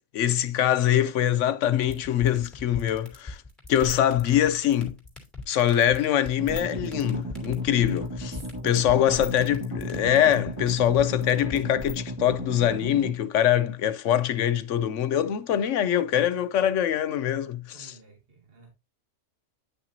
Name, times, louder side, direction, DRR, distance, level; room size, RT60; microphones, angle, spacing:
voice 1, 0.1-3.4 3.7-5.0 5.5-8.4 8.6-17.9, left 10 dB, 90° left, 1.0 m, -23 dB
sound 1, 1.8-11.9, left 3 dB, ahead, 2.8 m, -38 dB
sound 2, 6.4-13.1, equal, 20° right, 2.2 m, -35 dB
voice 2, 8.2-8.8 15.6-16.4 17.4-18.7, right 2 dB, 50° right, 2.1 m, -51 dB
9.9 x 5.9 x 2.7 m
omnidirectional pair, 1.2 m